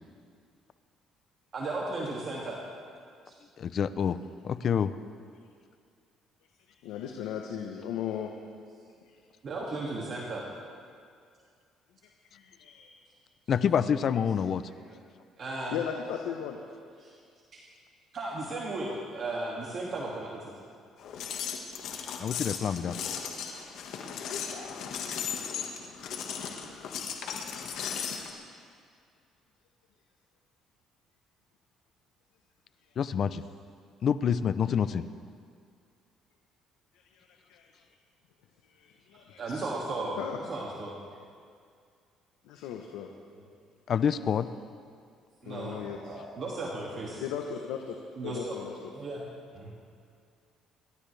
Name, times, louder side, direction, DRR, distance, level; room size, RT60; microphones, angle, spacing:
voice 1, 1.5-2.6 3.3-3.4 9.4-10.5 14.9-15.0 15.4-15.8 17.0-17.1 17.5-17.6 18.1-20.5 23.4-23.6 26.1-26.2 39.4-40.2 40.5-41.0 45.4-47.2 48.1-48.5 48.9-49.3 49.5-49.7, right 2 dB, 50° right, -4 dB, 2.4 m, -35 dB
voice 2, 3.6-4.2 4.4-4.9 13.5-14.6 22.2-22.9 33.0-33.4 34.0-35.0 43.9-44.5, left 7 dB, 55° left, 14 dB, 0.6 m, -27 dB
voice 3, 6.8-8.3 12.3-13.0 15.7-16.6 37.1-37.2 37.5-37.7 38.7-39.7 40.2-40.4 42.4-43.1 45.4-46.1 47.2-48.0 48.2-48.7, left 9 dB, 85° left, 2 dB, 1.1 m, -37 dB
sound 1, 21.0-28.3, left 7 dB, 70° left, 1.7 m, -36 dB
27.0 x 12.5 x 3.5 m, 2.2 s
supercardioid pair, 85°, 0 cm